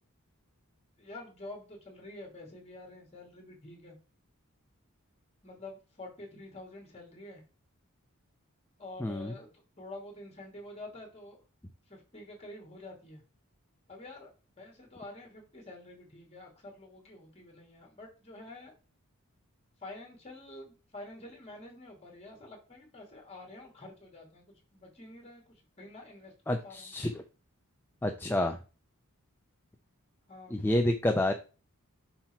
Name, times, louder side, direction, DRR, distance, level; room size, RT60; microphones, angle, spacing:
voice 1, 1.0-4.0 5.4-7.4 8.8-9.5 9.8-11.4 11.9-13.2 13.9-14.3 14.6-18.7 19.8-25.4 25.8-26.9 30.3-30.6, left 2 dB, 30° left, 0 dB, 2.5 m, -48 dB
voice 2, 9.0-9.3 26.5-27.2 28.0-28.6 30.5-31.3, left 1 dB, 10° left, 4 dB, 0.5 m, -29 dB
5.8 x 4.4 x 4.5 m, 0.31 s
head